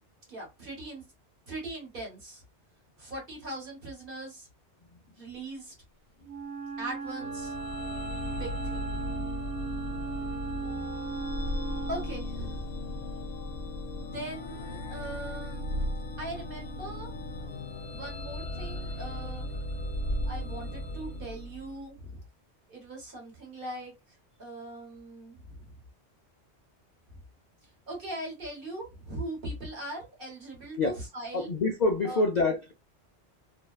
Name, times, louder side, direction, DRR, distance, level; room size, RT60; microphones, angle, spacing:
voice 1, 0.3-1.0 1.5-2.4 3.0-4.5 5.2-5.7 6.8-7.6 8.3-9.3 11.1-11.3 11.9-12.9 14.0-15.8 16.2-17.2 17.9-19.5 20.2-22.2 22.7-23.9 24.4-25.7 27.1-27.2 27.9-31.5 32.0-32.2, right 1 dB, 50° right, 1.3 m, -40 dB
Wind instrument woodwind instrument, 6.2-12.3, right 5 dB, 80° right, 1.0 m, -37 dB
sound 1, 7.2-21.9, left 1 dB, 75° left, 0.9 m, -36 dB
voice 2, 31.3-32.7, left 3 dB, 55° left, 0.5 m, -26 dB
2.6 x 2.2 x 2.2 m
omnidirectional pair, 1.2 m